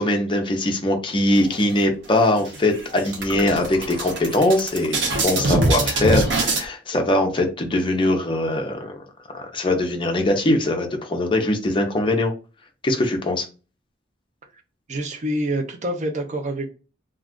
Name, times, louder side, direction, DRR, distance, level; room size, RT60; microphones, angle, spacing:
voice 1, 0.0-9.0 9.3-12.3 12.8-13.5, left 1 dB, 30° left, 0.6 m, -21 dB
sound 1, 1.3-2.1 2.5-2.6 2.9-6.7, right 2 dB, 85° right, 0.8 m, -24 dB
voice 2, 14.9-16.7, right 1 dB, 40° right, 0.5 m, -26 dB
2.4 x 2.3 x 3.5 m
head